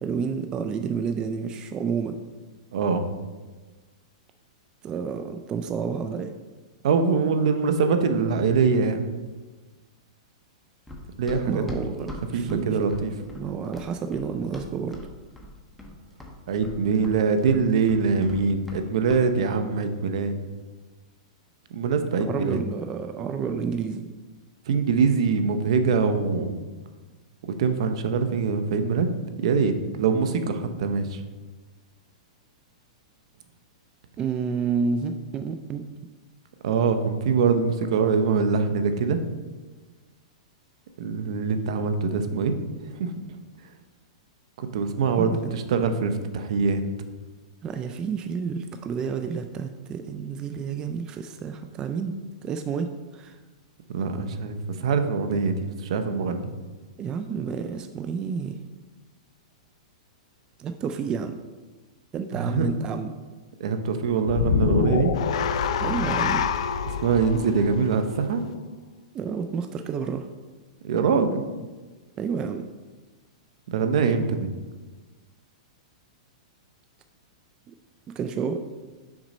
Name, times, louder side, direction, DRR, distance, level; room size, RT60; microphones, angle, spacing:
voice 1, 0.0-2.1 4.8-6.3 11.5-12.8 13.3-15.0 22.2-24.1 34.2-35.8 45.1-45.5 47.6-52.2 52.4-52.9 53.1-53.4 57.0-58.5 60.6-61.4 62.1-63.1 65.8-66.4 69.1-70.3 72.2-72.7 77.7-77.8 78.2-78.6, right 6 dB, 20° right, 7 dB, 0.4 m, -30 dB
voice 2, 2.7-3.0 6.8-9.0 11.2-11.6 12.3-13.1 16.5-20.3 21.7-22.6 24.7-26.6 27.6-29.1 29.4-31.2 36.6-39.2 41.0-42.5 43.0-43.1 44.6-46.8 53.9-56.5 62.4-62.7 63.6-65.1 67.0-68.4 70.8-71.4 73.7-74.5, right 5 dB, 65° right, 8 dB, 0.7 m, -23 dB
Run, 10.9-15.1 15.4-18.8 19.1-19.3, left 1 dB, 5° left, 0.9 m, -41 dB
sound 1, 64.2-68.6, left 6 dB, 65° left, 0.4 m, -26 dB
6.1 x 5.1 x 4.2 m, 1.3 s
hypercardioid pair, 145°, 4 cm